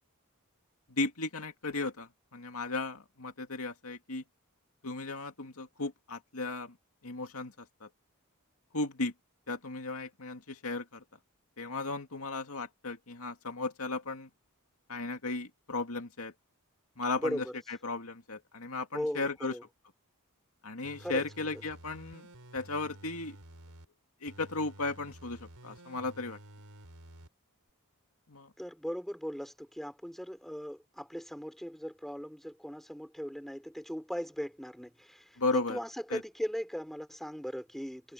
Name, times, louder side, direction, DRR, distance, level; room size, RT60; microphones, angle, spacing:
voice 1, 0.9-4.2 4.8-6.7 7.0-7.9 8.7-9.1 9.5-11.0 11.6-14.3 14.9-16.3 17.0-19.5 20.6-22.3 22.5-23.4 24.2-26.4 28.3-28.5 35.4-35.8 36.1-36.2, left 3 dB, 70° left, 2.4 m, -35 dB
voice 2, 17.2-17.6 18.9-19.6 21.0-21.2 21.5-21.6 28.6-38.1, equal, ahead, 4.4 m, -38 dB
sound 1, 20.8-23.9 24.3-27.3 27.7-27.8, right 1 dB, 85° right, 4.2 m, -52 dB
head